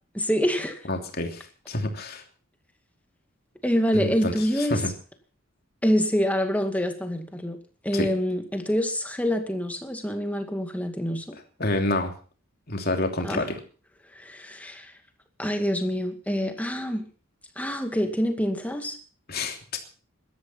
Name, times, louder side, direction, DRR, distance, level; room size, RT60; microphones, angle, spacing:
voice 1, 0.1-0.8 3.6-4.8 5.8-7.6 7.8-11.3 13.2-13.5 14.1-14.9 15.4-17.1 17.6-19.0, equal, 5° left, 6 dB, 2.2 m, -26 dB
voice 2, 0.9-2.2 3.9-4.9 7.9-8.1 11.6-12.1 12.7-13.6 19.3-19.8, left 2 dB, 45° left, 4 dB, 3.1 m, -28 dB
17.5 x 13.0 x 5.8 m, 0.39 s
head